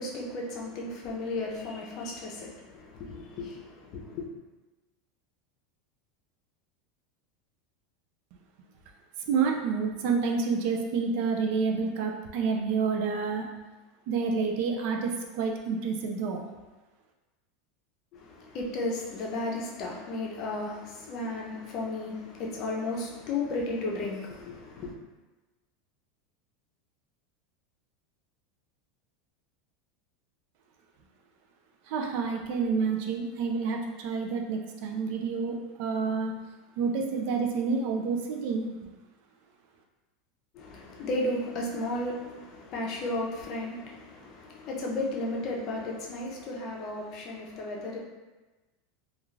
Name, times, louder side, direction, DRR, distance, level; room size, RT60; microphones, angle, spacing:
voice 1, 0.0-4.3 18.1-24.9 40.5-48.0, left 2 dB, 45° left, -2 dB, 0.6 m, -34 dB
voice 2, 9.3-13.5 14.1-16.4 31.9-36.3 36.8-38.7, right 5 dB, 60° right, 1 dB, 0.4 m, -29 dB
2.3 x 2.3 x 3.1 m, 1.2 s
supercardioid pair, 145°, 0 cm